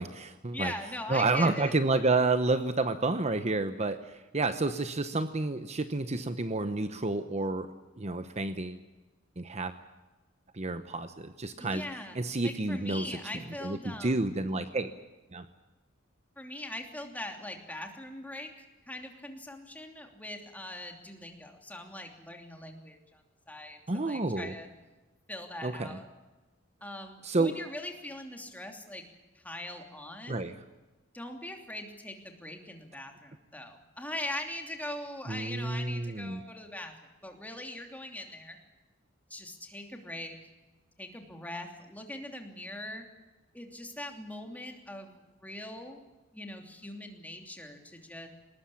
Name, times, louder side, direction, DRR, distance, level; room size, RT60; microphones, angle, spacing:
voice 1, 0.0-0.7 1.1-7.7 8.0-8.8 9.4-9.7 10.5-11.8 12.1-13.2 13.6-14.9 15.3-15.4 23.9-24.5 25.6-26.0 27.2-27.6 30.3-30.6 35.3-36.4, right 3 dB, 35° right, 10 dB, 0.9 m, -30 dB
voice 2, 0.5-1.7 11.6-12.2 12.4-14.3 16.4-24.7 25.3-26.1 26.8-29.0 29.3-30.5 31.1-38.6 39.3-40.4 41.0-43.1 43.5-46.0 46.3-48.3, left 1 dB, 10° left, 3 dB, 2.9 m, -41 dB
21.5 x 19.5 x 8.6 m, 1.1 s
head